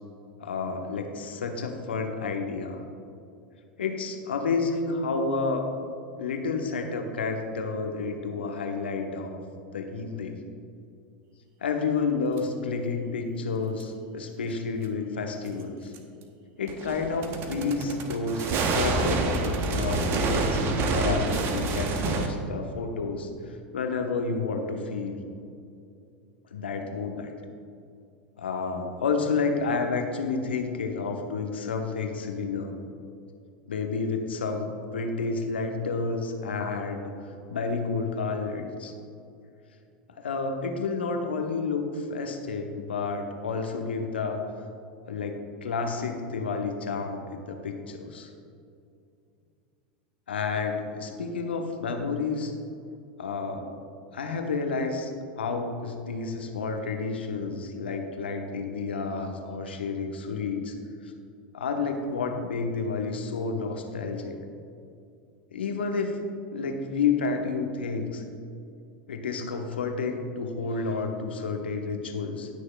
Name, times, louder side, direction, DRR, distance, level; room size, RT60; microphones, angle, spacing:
voice 1, 0.4-2.8 3.8-5.7 6.2-9.4 9.7-10.4 11.6-15.9 16.6-25.2 26.5-27.3 28.4-32.7 33.7-37.1 37.5-38.9 40.2-44.5 45.1-48.3 50.3-52.5 53.2-53.7 54.1-60.7 61.0-61.1 61.5-64.4 65.5-66.2 66.5-68.2 69.1-72.5, left 4 dB, 80° left, 4 dB, 1.0 m, -30 dB
sound 1, 12.4-12.5 13.8-13.9 15.9-16.0 16.7-22.3, right 3 dB, 45° right, 1.0 m, -27 dB
18.5 x 6.4 x 2.3 m, 2.5 s
hypercardioid pair, 85°, 6 cm